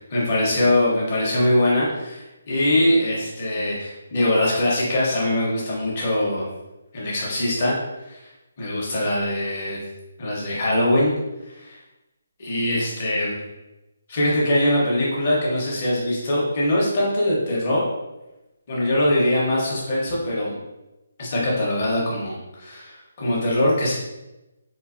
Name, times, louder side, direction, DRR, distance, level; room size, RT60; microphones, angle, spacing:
voice 1, 0.1-6.4 6.9-7.7 8.1-8.2 8.6-9.8 10.2-11.1 11.5-11.8 12.4-13.3 14.1-17.8 18.7-20.5 21.2-23.9, left 1 dB, 25° left, -5 dB, 0.9 m, -22 dB
3.8 x 2.6 x 2.5 m, 1.0 s
hypercardioid pair, 175°, 0 cm